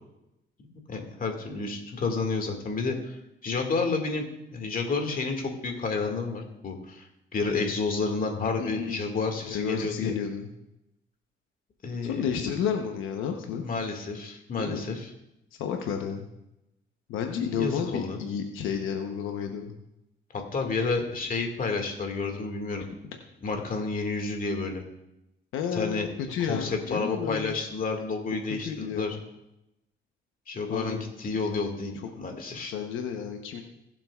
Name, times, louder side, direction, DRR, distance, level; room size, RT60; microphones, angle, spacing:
voice 1, 0.9-4.2 4.5-7.1 7.3-10.1 11.8-12.4 13.6-15.1 17.4-18.2 20.3-22.9 23.4-24.8 25.7-26.1 26.4-29.2 30.5-32.7, left 4 dB, 45° left, 3 dB, 2.1 m, -30 dB
voice 2, 8.6-10.5 12.0-13.6 14.6-14.8 15.5-16.3 17.1-19.7 25.5-27.5 28.6-29.2 30.7-31.0 32.7-33.6, left 7 dB, 90° left, 3 dB, 1.0 m, -31 dB
20.0 x 7.6 x 2.4 m, 0.89 s
cardioid pair, 90°, 20 cm